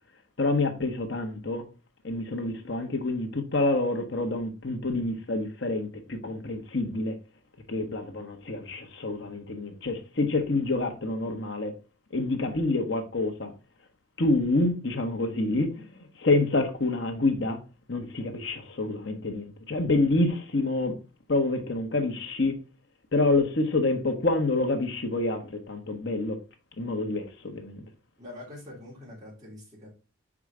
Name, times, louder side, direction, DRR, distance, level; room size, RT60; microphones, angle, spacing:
voice 1, 0.4-1.6 2.0-7.2 7.7-11.7 12.1-13.5 14.2-17.6 17.9-20.9 21.3-22.6 23.1-26.4 26.8-27.8, left 2 dB, 55° left, 1.2 m, -27 dB
voice 2, 28.2-29.9, left 1 dB, 20° right, 3.6 m, -44 dB
5.4 x 5.0 x 4.9 m
head